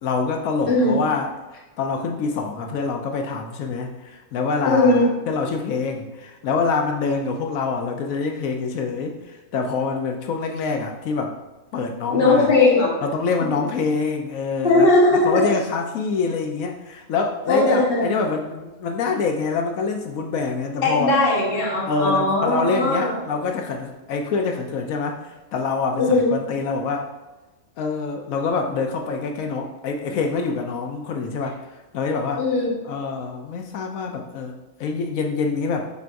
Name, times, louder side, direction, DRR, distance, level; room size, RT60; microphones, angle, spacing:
voice 1, 0.0-1.3 1.8-11.3 11.7-12.5 13.0-14.9 15.2-21.1 21.9-27.1 27.8-31.7 31.9-32.4 32.8-35.9, left 4 dB, 85° left, 3 dB, 1.1 m, -25 dB
voice 2, 4.6-5.0 12.1-12.9 13.4-13.5 14.6-15.5 17.4-18.1 20.8-23.1 26.0-26.3 32.4-32.7, left 2 dB, 45° left, -4 dB, 1.5 m, -18 dB
11.0 x 4.6 x 2.5 m, 1.1 s
omnidirectional pair, 1.4 m